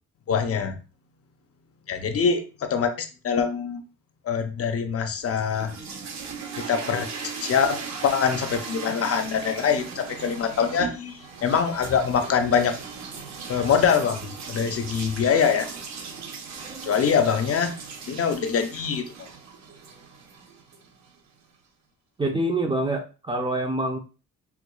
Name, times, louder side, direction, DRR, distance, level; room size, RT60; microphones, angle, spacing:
voice 1, 0.3-0.7 1.9-3.8 4.2-5.7 6.6-7.1 7.4-12.7 13.5-15.7 16.8-17.7 18.1-19.3, left 6 dB, 50° left, 6 dB, 0.6 m, -24 dB
sound 1, 5.2-21.2, right 5 dB, 65° right, 0.8 m, -38 dB
voice 2, 22.2-24.0, right 1 dB, 15° right, 4 dB, 0.5 m, -26 dB
4.5 x 2.3 x 2.3 m, 0.33 s
cardioid pair, 90°, 30 cm